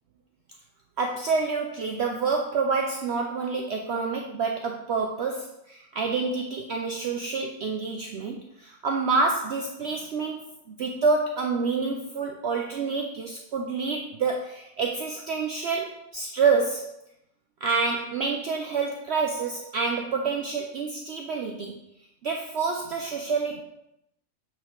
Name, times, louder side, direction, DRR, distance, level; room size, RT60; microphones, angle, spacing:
voice 1, 1.0-16.9 17.6-21.8 22.2-23.6, right 4 dB, 60° right, 2 dB, 0.8 m, -28 dB
8.1 x 4.5 x 3.8 m, 0.82 s
omnidirectional pair, 1.4 m